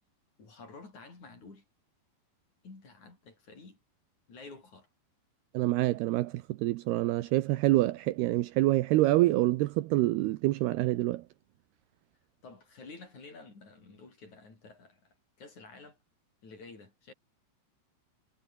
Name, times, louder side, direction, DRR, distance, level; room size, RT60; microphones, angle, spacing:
voice 1, 0.4-1.7 2.6-3.8 4.3-4.9 12.4-16.0 16.4-17.1, left 3 dB, 40° left, 7.7 m, -50 dB
voice 2, 5.5-11.2, right 17 dB, 80° right, 2.6 m, -26 dB
omnidirectional pair, 5.1 m